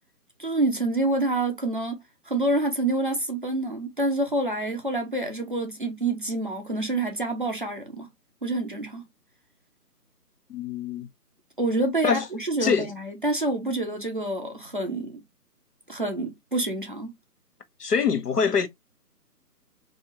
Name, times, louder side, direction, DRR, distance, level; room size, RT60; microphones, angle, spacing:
voice 1, 0.4-8.1 8.4-9.0 11.6-15.2 15.9-17.2, right 2 dB, 35° right, 0.7 m, -27 dB
voice 2, 10.5-11.1 12.0-12.2 12.6-12.9 17.8-18.7, left 6 dB, 75° left, 1.1 m, -24 dB
3.8 x 2.7 x 2.8 m
hypercardioid pair, 170°, 48 cm